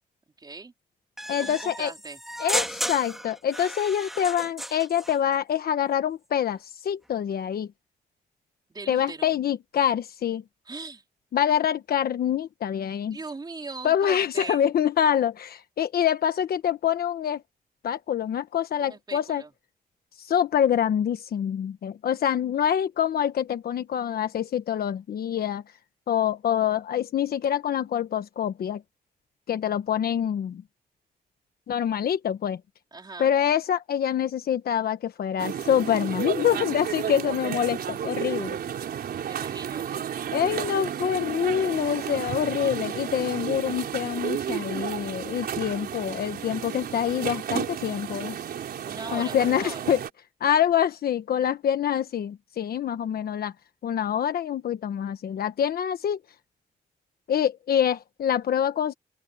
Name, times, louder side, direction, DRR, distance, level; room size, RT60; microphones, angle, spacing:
voice 1, 0.4-0.7 1.4-2.2 8.7-9.3 10.7-11.0 13.1-14.7 18.8-19.5 32.9-33.3 39.3-39.9 48.8-49.9, right 3 dB, 25° right, 4.1 m, -40 dB
sound 1, 1.2-5.2, equal, ahead, 2.0 m, -33 dB
voice 2, 1.3-1.9 2.4-7.7 8.9-10.4 11.3-13.2 13.8-17.4 17.8-19.4 20.2-25.6 26.1-28.8 29.5-30.6 31.7-32.6 33.2-38.6 40.3-48.4 49.1-50.0 50.4-53.5 53.8-56.2 57.3-58.9, left 9 dB, 70° left, 1.2 m, -26 dB
sound 2, 35.4-50.1, right 9 dB, 75° right, 4.4 m, -32 dB
open air
wide cardioid pair, 130°, 16 cm